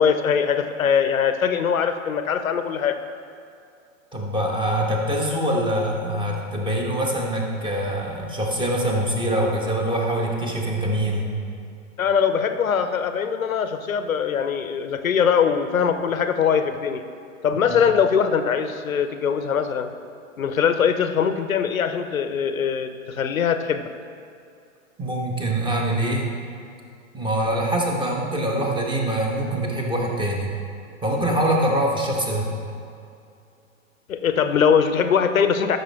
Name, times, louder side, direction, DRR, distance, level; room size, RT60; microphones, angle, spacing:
voice 1, 0.0-3.0 12.0-17.0 17.4-19.9 20.4-23.9 34.1-35.8, left 7 dB, 85° left, 9 dB, 0.8 m, -22 dB
voice 2, 4.1-11.3 17.7-17.8 25.0-26.3 27.1-30.5 31.0-32.5, right 1 dB, 10° right, -1 dB, 1.4 m, -24 dB
13.0 x 6.3 x 3.5 m, 2.5 s
hypercardioid pair, 105°, 40 cm